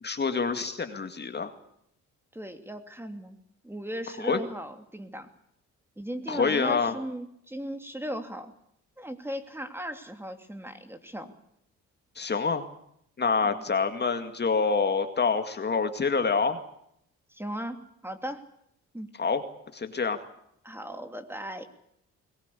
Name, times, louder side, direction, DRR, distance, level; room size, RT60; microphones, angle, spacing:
voice 1, 0.0-1.5 4.2-4.4 6.3-7.0 12.2-12.6 13.2-16.6 19.2-19.4 19.7-20.2, left 5 dB, 35° left, 8 dB, 2.2 m, -26 dB
voice 2, 2.3-3.4 3.6-5.3 6.0-8.5 9.0-11.3 13.4-13.6 17.3-18.4 18.9-19.1 20.6-21.6, equal, 10° right, 7 dB, 2.8 m, -37 dB
22.0 x 20.0 x 8.4 m, 0.73 s
cardioid pair, 90°, 30 cm